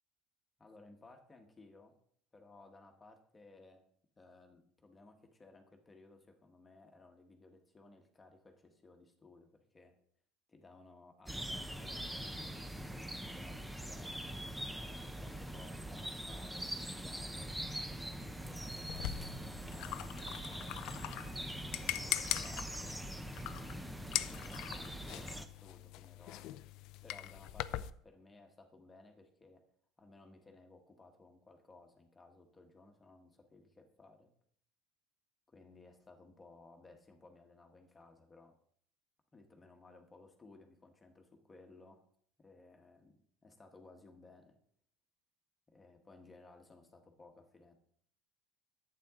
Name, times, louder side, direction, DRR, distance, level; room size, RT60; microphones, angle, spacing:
voice 1, 0.6-2.0 2.3-3.8 4.2-9.9 10.5-17.5 18.2-23.0 23.9-26.6 27.0-29.6 30.0-34.3 35.5-38.5 39.3-42.0 42.4-44.6 45.7-47.7, left 3 dB, 15° left, 4 dB, 1.4 m, -59 dB
sound 1, 11.3-25.4, right 1 dB, 5° right, 0.6 m, -43 dB
sound 2, 18.9-27.9, left 14 dB, 60° left, 0.4 m, -42 dB
11.0 x 8.6 x 3.7 m, 0.64 s
cardioid pair, 140°, 0 cm